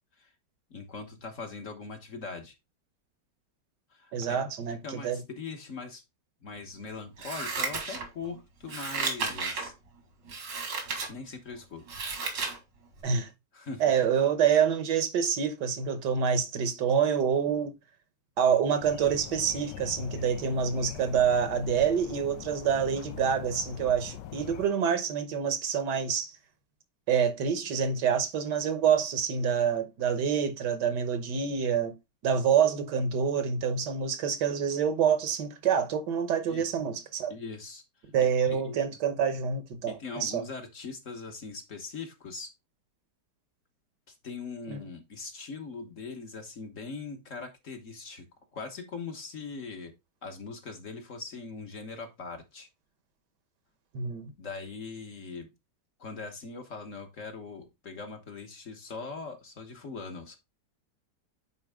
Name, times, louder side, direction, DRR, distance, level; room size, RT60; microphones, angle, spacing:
voice 1, 0.7-2.5 3.9-4.4 4.8-6.0 6.4-9.7 11.1-11.8 13.5-13.8 36.4-36.6 37.3-37.8 38.4-38.8 39.9-42.5 44.1-48.3 48.5-49.9 50.2-52.7 54.4-55.5 56.0-60.4, left 4 dB, 45° left, 1.4 m, -41 dB
voice 2, 4.1-5.2 13.0-13.3 13.8-17.7 18.4-26.3 27.1-31.9 32.2-37.3 38.1-40.4 44.7-44.8 53.9-54.3, right 7 dB, 70° right, 1.5 m, -27 dB
Scissors, 7.2-8.3 8.7-9.7 10.3-11.1 11.5-12.6 13.0-13.1, right 4 dB, 85° right, 2.6 m, -33 dB
sound 1, 18.8-24.7, left 10 dB, 80° left, 1.3 m, -42 dB
8.9 x 4.1 x 3.5 m
omnidirectional pair, 1.9 m